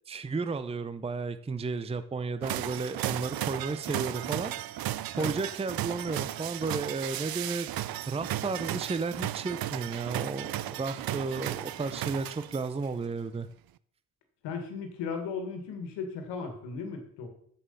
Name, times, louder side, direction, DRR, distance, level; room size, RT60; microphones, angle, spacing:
voice 1, 0.1-4.6 4.9-7.7 8.1-13.5, right 4 dB, 15° right, 12 dB, 0.6 m, -33 dB
sound 1, 2.4-12.8, right 13 dB, 60° right, 0.6 m, -35 dB
voice 2, 14.4-17.3, left 5 dB, 90° left, 6 dB, 1.9 m, -36 dB
7.0 x 6.8 x 6.9 m, 0.64 s
supercardioid pair, 60°, 41 cm